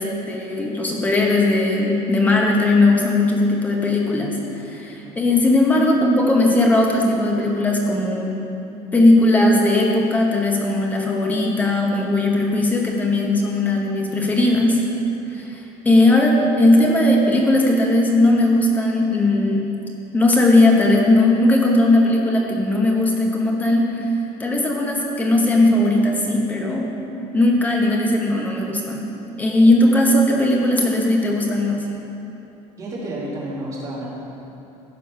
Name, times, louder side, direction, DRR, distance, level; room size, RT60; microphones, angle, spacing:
voice 1, 0.0-8.4 8.9-14.8 15.3-19.7 20.1-24.1 24.4-27.0 27.3-29.0 29.4-31.8, left 2 dB, 10° left, -1 dB, 1.1 m, -18 dB
voice 2, 32.8-34.1, right 1 dB, 25° right, -7 dB, 2.4 m, -30 dB
15.0 x 5.2 x 5.6 m, 2.9 s
cardioid pair, 175°, 14 cm